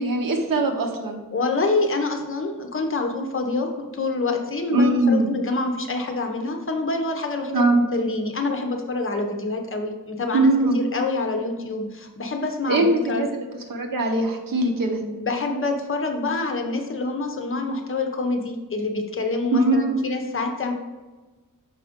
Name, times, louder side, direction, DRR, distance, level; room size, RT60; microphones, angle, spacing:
voice 1, 0.0-1.2 4.7-5.3 7.5-7.8 10.3-10.8 12.7-13.4 13.7-15.0 19.5-20.0, right 2 dB, 70° right, 3 dB, 1.0 m, -21 dB
voice 2, 1.3-13.2 15.0-20.7, left 3 dB, 35° left, 4 dB, 0.7 m, -26 dB
6.0 x 4.8 x 3.6 m, 1.3 s
wide cardioid pair, 155°, 35 cm